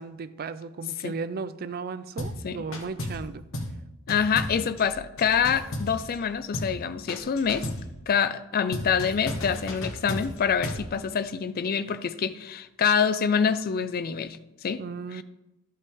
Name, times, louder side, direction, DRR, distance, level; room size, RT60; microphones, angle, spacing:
voice 1, 0.0-3.5 14.8-15.2, right 4 dB, 45° right, 13 dB, 0.4 m, -35 dB
sound 1, 2.2-2.4 2.7-3.3 3.5-3.8 4.1-6.2 6.5-6.8 7.1-7.9 8.7-10.9, left 1 dB, 65° left, 1.2 m, -34 dB
voice 2, 4.1-7.7 8.1-14.8 15.1-15.2, left 7 dB, 45° left, 13 dB, 0.4 m, -26 dB
12.0 x 5.5 x 3.5 m, 0.93 s
head